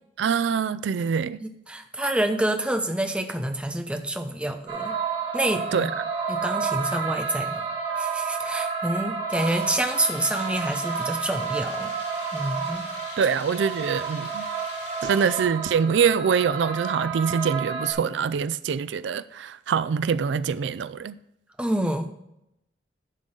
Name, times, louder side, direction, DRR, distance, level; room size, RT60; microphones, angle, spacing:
voice 1, 0.2-1.4 5.7-5.9 13.2-14.5 15.0-21.1, right 6 dB, 85° right, 0.4 m, -24 dB
voice 2, 1.4-5.0 5.3-5.9 6.3-7.6 8.0-11.9 12.3-12.9 21.6-22.1, right 1 dB, 5° right, 0.7 m, -27 dB
sound 1, 4.7-17.9, right 5 dB, 55° right, 2.5 m, -30 dB
sound 2, 9.3-15.4, left 3 dB, 70° left, 2.8 m, -43 dB
11.0 x 3.8 x 6.5 m
head